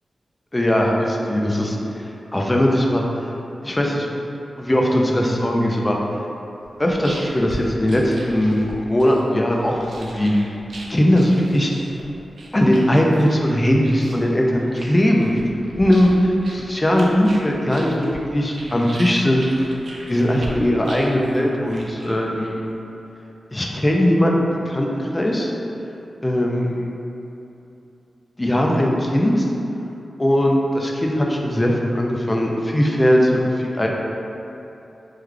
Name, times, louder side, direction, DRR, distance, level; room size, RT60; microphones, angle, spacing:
voice 1, 0.5-1.8 2.3-3.1 3.6-4.1 4.6-6.0 6.8-10.3 10.9-11.7 12.5-15.3 15.8-16.1 16.5-19.4 20.1-22.6 23.5-25.5 26.2-26.9 28.4-29.5 30.2-33.9, equal, 15° left, -1 dB, 0.4 m, -19 dB
sound 1, 6.6-22.7, right 1 dB, 65° right, 0.4 m, -39 dB
3.1 x 2.2 x 3.6 m, 2.9 s
wide cardioid pair, 130°, 0 cm